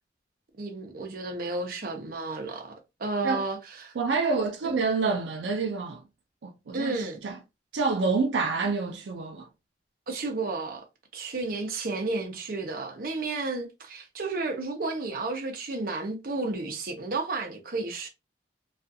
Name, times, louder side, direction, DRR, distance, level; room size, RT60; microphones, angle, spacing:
voice 1, 0.6-3.9 4.6-4.7 6.7-7.2 10.1-10.8 11.1-18.1, right 3 dB, 55° right, 0.7 m, -32 dB
voice 2, 4.0-6.0 6.4-7.4 7.7-9.5, right 4 dB, 90° right, 0.4 m, -27 dB
2.4 x 2.3 x 2.6 m
head